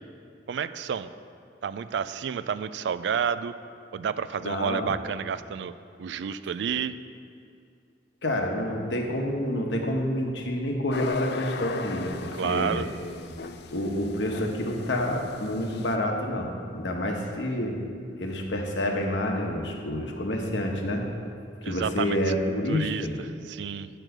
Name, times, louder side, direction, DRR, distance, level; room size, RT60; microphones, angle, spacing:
voice 1, 0.5-1.1 1.6-3.5 3.9-5.7 6.0-6.9 12.4-12.9 21.6-22.2 22.7-23.1 23.5-23.9, right 7 dB, 70° right, 14 dB, 0.3 m, -30 dB
voice 2, 4.4-4.9 8.2-12.9 13.7-17.8 18.2-21.0 21.6-23.1, left 1 dB, 80° left, 2 dB, 1.1 m, -28 dB
sound 1, 10.9-16.0, left 4 dB, 60° left, 0.5 m, -37 dB
8.9 x 4.6 x 6.5 m, 2.5 s
head